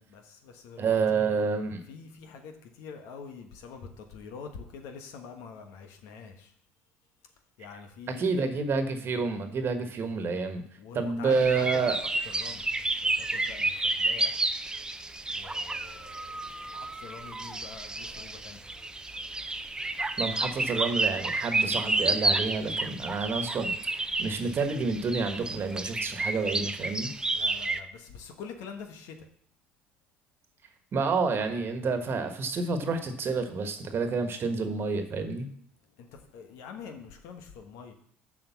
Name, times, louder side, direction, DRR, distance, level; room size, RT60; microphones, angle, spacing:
voice 1, 0.1-1.3 1.8-6.5 7.6-8.5 10.8-14.5 15.3-18.8 27.3-29.3 35.9-37.9, left 5 dB, 70° left, 5 dB, 1.2 m, -45 dB
voice 2, 0.8-1.8 8.1-10.6 10.9-12.0 20.2-27.1 30.9-35.5, right 4 dB, 45° right, 7 dB, 1.4 m, -29 dB
sound 1, 11.3-27.8, right 2 dB, 15° right, 0.6 m, -31 dB
7.1 x 5.2 x 7.1 m, 0.64 s
hypercardioid pair, 65°, 5 cm